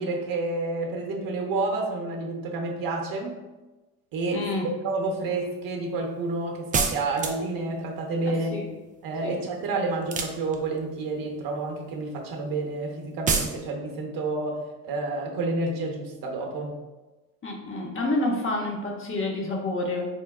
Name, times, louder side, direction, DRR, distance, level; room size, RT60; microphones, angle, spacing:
voice 1, 0.0-3.4 4.1-4.5 4.8-8.5 9.0-14.6 14.8-16.8, right 3 dB, 55° right, 1 dB, 0.8 m, -29 dB
voice 2, 4.3-4.7 8.3-8.7 9.2-9.4 17.4-20.1, left 2 dB, 30° left, 0 dB, 0.8 m, -29 dB
sound 1, 6.7-7.6 10.0-10.8 13.3-13.6, right 5 dB, 20° right, 0.3 m, -26 dB
4.5 x 2.1 x 2.3 m, 1.1 s
hypercardioid pair, 55°, 43 cm